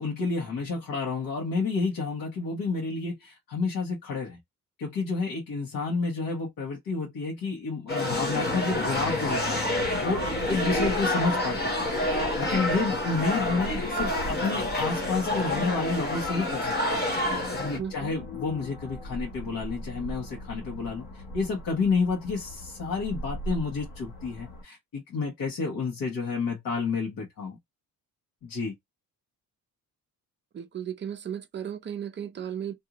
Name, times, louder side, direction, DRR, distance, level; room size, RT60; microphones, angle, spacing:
voice 1, 0.0-4.4 4.8-9.6 10.0-11.8 12.4-17.0 17.5-27.6 28.4-28.7, left 4 dB, 60° left, 1.1 m, -30 dB
sound 1, 7.9-17.8, left 1 dB, 25° left, 0.8 m, -28 dB
sound 2, 8.7-24.6, left 1 dB, 90° left, 1.2 m, -40 dB
voice 2, 17.8-18.2 30.5-32.7, right 9 dB, 30° right, 0.5 m, -35 dB
2.6 x 2.5 x 2.9 m
cardioid pair, 165°, 38 cm